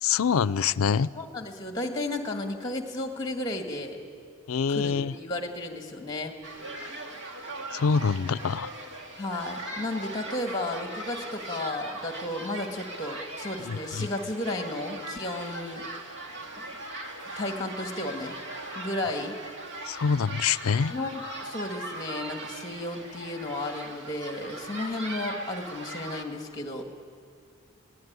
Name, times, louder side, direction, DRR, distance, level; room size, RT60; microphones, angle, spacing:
voice 1, 0.0-1.1 4.5-5.1 7.7-8.7 13.6-14.1 19.9-20.9, left 6 dB, 85° left, 18 dB, 0.5 m, -25 dB
voice 2, 1.2-4.0 4.7-6.3 9.2-15.8 17.4-18.3 18.8-19.4 20.9-26.8, left 2 dB, 20° left, 4 dB, 1.9 m, -33 dB
sound 1, 6.4-26.2, right 2 dB, 55° right, 2.1 m, -39 dB
22.0 x 17.0 x 9.6 m, 2.2 s
head